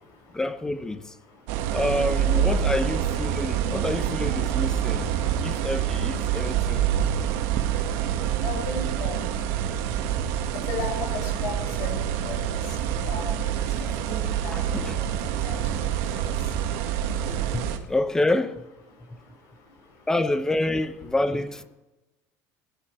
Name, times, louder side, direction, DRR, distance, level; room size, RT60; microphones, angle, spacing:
voice 1, 0.3-1.1 1.7-5.1 5.4-6.9 13.8-13.9 14.5-15.0 17.2-18.6 20.1-21.6, left 2 dB, 10° left, 0.8 m, -28 dB
sound 1, 1.5-17.8, right 9 dB, 80° right, 1.9 m, -26 dB
voice 2, 8.4-9.2 10.7-11.9 12.2-12.3 13.1-13.3 14.0-14.5 15.4-15.6, left 4 dB, 50° left, 5.9 m, -33 dB
22.0 x 11.0 x 4.8 m
cardioid pair, 160°, 7 cm